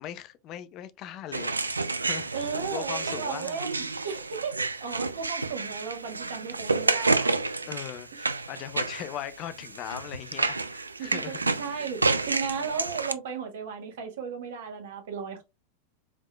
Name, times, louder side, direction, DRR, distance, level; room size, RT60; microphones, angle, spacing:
voice 1, 0.0-3.6 7.7-11.8, left 11 dB, 40° left, 0.5 m, -39 dB
sound 1, 1.3-13.1, right 3 dB, 80° right, 0.4 m, -30 dB
voice 2, 2.3-7.3 11.0-15.4, right 6 dB, 55° right, 1.2 m, -35 dB
4.8 x 3.7 x 2.3 m
figure-of-eight pair, 90°, 0 cm